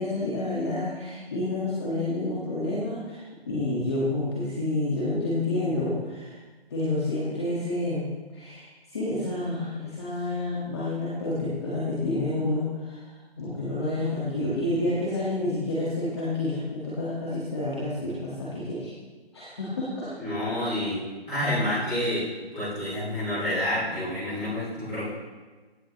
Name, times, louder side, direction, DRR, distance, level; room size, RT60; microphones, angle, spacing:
voice 1, 0.0-3.2 3.5-6.4 6.7-8.1 8.3-13.0 13.4-18.9 19.3-20.1, left 2 dB, 25° left, -8 dB, 2.1 m, -29 dB
voice 2, 20.2-21.0 21.3-22.2 22.5-25.0, left 1 dB, ahead, -21 dB, 0.8 m, -28 dB
16.5 x 10.0 x 3.3 m, 1.3 s
hypercardioid pair, 175°, 31 cm